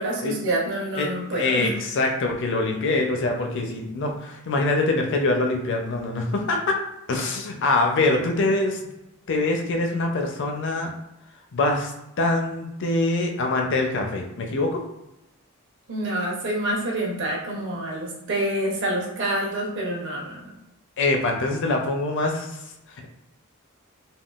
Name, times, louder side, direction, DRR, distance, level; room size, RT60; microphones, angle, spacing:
voice 1, 0.0-1.7 15.9-20.5, right 1 dB, 60° right, -2 dB, 0.8 m, -27 dB
voice 2, 1.3-6.8 7.1-8.8 9.3-10.9 11.5-11.9 12.2-14.8 21.0-22.5, left 2 dB, 55° left, 2 dB, 0.5 m, -24 dB
3.6 x 2.2 x 2.4 m, 0.91 s
head